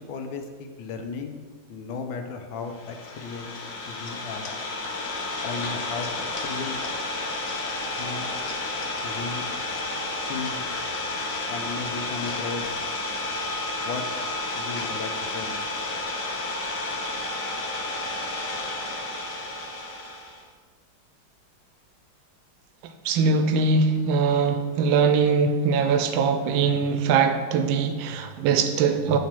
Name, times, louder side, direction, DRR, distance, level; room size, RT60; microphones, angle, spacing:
voice 1, 0.0-3.5 3.9-4.5 5.4-6.8 8.0-8.3 9.0-9.5 10.3-10.6 11.5-12.7 13.8-14.1 14.5-15.7, left 4 dB, 85° left, 5 dB, 1.5 m, -35 dB
Idling, 2.7-20.4, left 2 dB, 60° left, 1.0 m, -31 dB
voice 2, 23.0-29.2, right 5 dB, 85° right, 7 dB, 1.3 m, -22 dB
9.4 x 3.4 x 4.4 m, 1.5 s
omnidirectional pair, 2.1 m